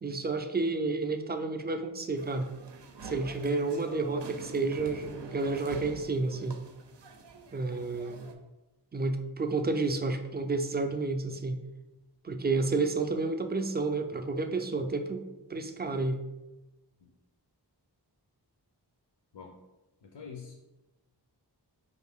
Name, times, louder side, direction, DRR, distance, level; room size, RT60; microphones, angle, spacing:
voice 1, 0.0-2.5 3.0-6.6 7.5-8.3 8.9-11.6 12.2-16.2, right 3 dB, 25° right, 7 dB, 0.3 m, -30 dB
sound 1, 2.2-8.3, right 4 dB, 80° right, 0.5 m, -46 dB
voice 2, 20.0-20.6, left 6 dB, 75° left, 1 dB, 0.6 m, -46 dB
4.8 x 2.5 x 3.5 m, 1.0 s
wide cardioid pair, 60°, 41 cm